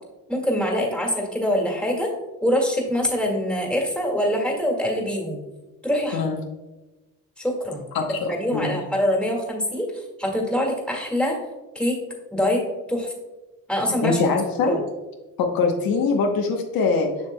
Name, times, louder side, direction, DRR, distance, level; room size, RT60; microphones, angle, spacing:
voice 1, 0.3-2.1 2.4-5.4 5.8-6.3 7.4-11.4 11.8-12.0 12.3-12.6 12.9-13.1 13.7-14.2 14.6-14.8, equal, 5° left, -1 dB, 1.8 m, -24 dB
voice 2, 7.9-8.8 14.0-14.8 15.4-17.1, left 4 dB, 65° left, 2 dB, 1.0 m, -23 dB
7.5 x 5.9 x 2.2 m, 1.1 s
supercardioid pair, 85°, 37 cm